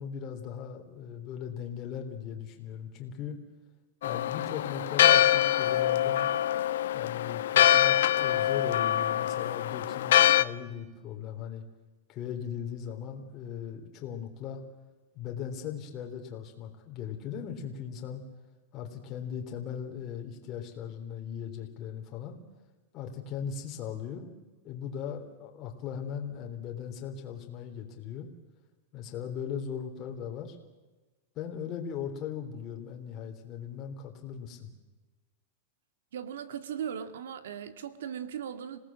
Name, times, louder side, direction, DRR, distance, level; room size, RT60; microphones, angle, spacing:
voice 1, 0.0-3.4 4.0-6.3 6.9-11.6 12.1-14.6 15.1-18.2 18.7-22.4 22.9-24.3 24.6-28.3 28.9-30.6 31.4-34.7, left 8 dB, 30° left, 3 dB, 3.7 m, -38 dB
Church bell, 4.0-10.4, left 12 dB, 75° left, 0.9 m, -24 dB
voice 2, 36.1-38.8, right 8 dB, 85° right, 10 dB, 2.1 m, -38 dB
27.0 x 18.5 x 7.6 m, 1.2 s
supercardioid pair, 155°, 0 cm